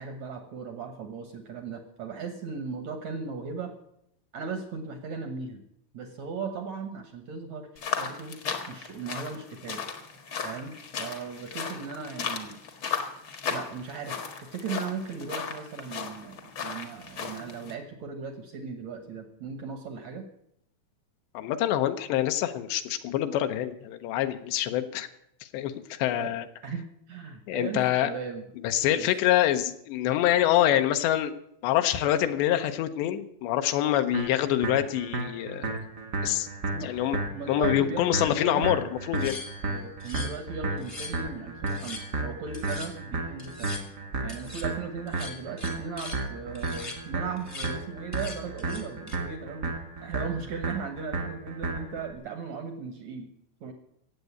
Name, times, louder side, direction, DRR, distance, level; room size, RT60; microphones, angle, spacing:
voice 1, 0.0-3.7 4.3-5.6 5.9-8.4 8.7-9.8 10.4-12.6 13.5-14.1 14.4-20.3 26.2-26.3 26.6-28.5 28.9-29.1 36.7-36.9 37.2-38.7 39.6-43.8 44.2-49.7 50.0-53.3 53.6-53.7, right 5 dB, 75° right, 7 dB, 1.6 m, -37 dB
sound 1, 7.8-17.7, left 6 dB, 60° left, 1.3 m, -36 dB
voice 2, 21.3-25.1 25.5-25.7 26.0-26.5 27.5-28.1 28.6-31.3 31.6-35.7 36.2-36.5 36.8-37.2 37.5-39.4, left 12 dB, 85° left, 8 dB, 3.0 m, -25 dB
sound 2, 34.1-52.1, right 3 dB, 60° right, 1.0 m, -33 dB
sound 3, 39.1-40.5 40.8-41.2 41.7-42.1 42.5-42.9 43.4-43.8 44.3-44.7 45.1-46.3 46.5-47.0 47.4-47.8 48.1-49.2, left 3 dB, 30° left, 0.5 m, -42 dB
17.0 x 8.0 x 8.2 m, 0.75 s
omnidirectional pair, 4.9 m